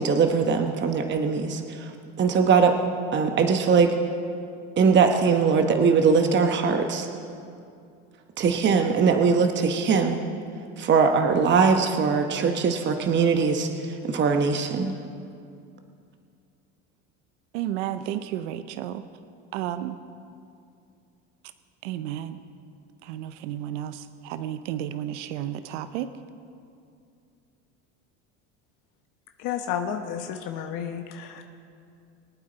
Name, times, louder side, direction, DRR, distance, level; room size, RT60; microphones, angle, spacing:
voice 1, 0.0-1.9 2.2-2.8 3.1-3.9 4.8-7.1 8.4-10.2 10.8-15.0, right 5 dB, 30° right, 5 dB, 1.0 m, -21 dB
voice 2, 17.5-19.0 19.5-20.0 21.8-22.4 23.0-26.1, right 11 dB, 80° right, 12 dB, 0.7 m, -32 dB
voice 3, 29.4-31.4, left 8 dB, 60° left, 5 dB, 1.0 m, -31 dB
23.0 x 8.8 x 4.0 m, 2.4 s
supercardioid pair, 105°, 35 cm